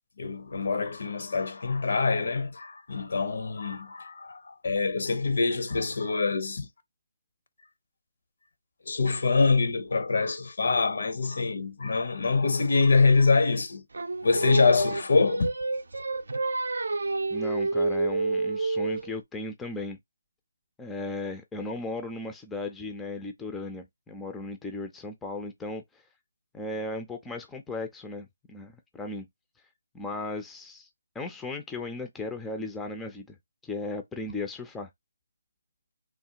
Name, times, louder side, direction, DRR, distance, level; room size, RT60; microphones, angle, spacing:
voice 1, 0.2-6.7 8.9-13.8 14.2-15.5, left 4 dB, 60° left, 0.6 m, -25 dB
Singing, 13.9-19.1, right 3 dB, 70° right, 0.4 m, -29 dB
voice 2, 17.3-20.0 20.8-26.0 26.5-29.2 29.9-30.9 31.1-33.4 33.6-34.9, left 2 dB, 5° left, 0.4 m, -36 dB
3.1 x 2.2 x 2.8 m
figure-of-eight pair, 160°, 0 cm